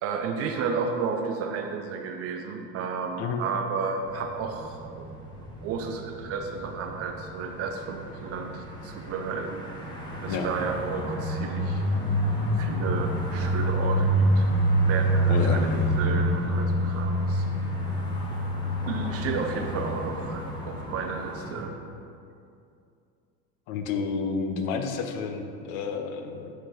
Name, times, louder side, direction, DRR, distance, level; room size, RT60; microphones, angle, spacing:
voice 1, 0.0-5.1 5.6-11.8 12.6-14.5 14.8-17.5 18.9-21.8, right 5 dB, 30° right, 4 dB, 0.5 m, -32 dB
sound 1, 4.0-21.6, equal, 10° left, 1.2 m, -27 dB
voice 2, 15.3-15.7 23.7-26.5, left 5 dB, 40° left, 6 dB, 0.7 m, -30 dB
7.4 x 4.4 x 4.6 m, 2.5 s
figure-of-eight pair, 75°, 49 cm